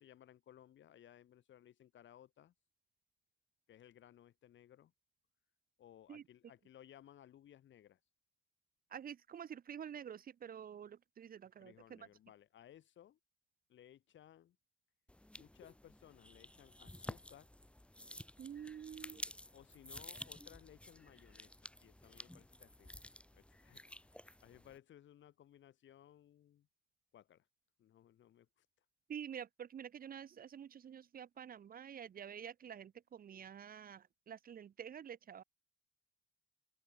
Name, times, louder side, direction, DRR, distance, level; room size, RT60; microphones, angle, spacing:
voice 1, 0.0-2.5 3.7-4.9 5.8-8.0 11.6-13.2 13.7-14.6 15.4-17.5 19.5-23.0 23.3-26.7 27.1-27.5 27.8-28.7, left 11 dB, 70° left, 4.6 m, -61 dB
voice 2, 8.9-12.1 18.4-19.2 29.1-35.4, right 8 dB, 45° right, 0.8 m, -49 dB
sound 1, 15.1-24.8, left 1 dB, 5° left, 1.8 m, -52 dB
open air
cardioid pair, 90°, 20 cm